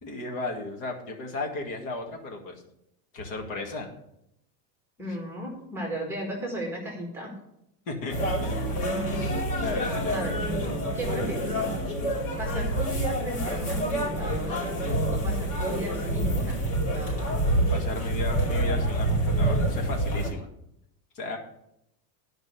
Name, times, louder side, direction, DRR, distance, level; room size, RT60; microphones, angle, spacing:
voice 1, 0.0-2.6 3.1-3.9 7.9-8.5 9.1-10.2 17.7-20.5 21.1-21.4, left 2 dB, 40° left, 2 dB, 2.0 m, -35 dB
voice 2, 5.0-7.3 10.1-10.4 10.9-11.6 12.4-14.6 15.1-17.4, right 1 dB, 5° right, 0 dB, 1.6 m, -35 dB
sound 1, 8.1-20.3, right 1 dB, 55° left, 4.4 m, -27 dB
10.5 x 5.3 x 7.8 m, 0.78 s
supercardioid pair, 175°, 47 cm